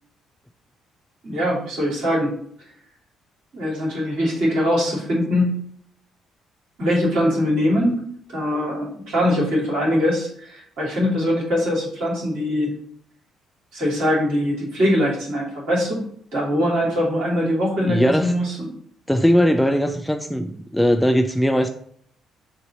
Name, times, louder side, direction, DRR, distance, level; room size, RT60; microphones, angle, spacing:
voice 1, 1.2-2.3 3.5-5.5 6.8-8.0 8.3-12.7 13.7-16.0 16.3-18.7, equal, 55° right, -4 dB, 2.6 m, -22 dB
voice 2, 17.8-18.3 19.1-21.7, equal, 5° left, 5 dB, 0.6 m, -19 dB
6.8 x 2.8 x 5.4 m, 0.63 s
figure-of-eight pair, 45°, 0 cm